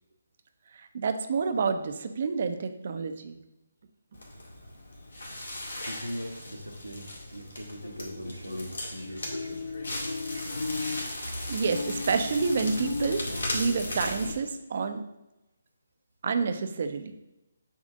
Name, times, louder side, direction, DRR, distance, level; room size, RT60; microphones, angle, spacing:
voice 1, 0.7-3.4 11.5-15.1 16.2-17.1, right 5 dB, 45° right, 9 dB, 0.7 m, -29 dB
Crackle, 4.1-14.3, left 2 dB, 65° left, 2.0 m, -35 dB
voice 2, 5.7-9.6 11.2-11.5, equal, 85° right, 3 dB, 1.2 m, -40 dB
7.4 x 3.6 x 6.2 m, 0.95 s
figure-of-eight pair, 140°, 0 cm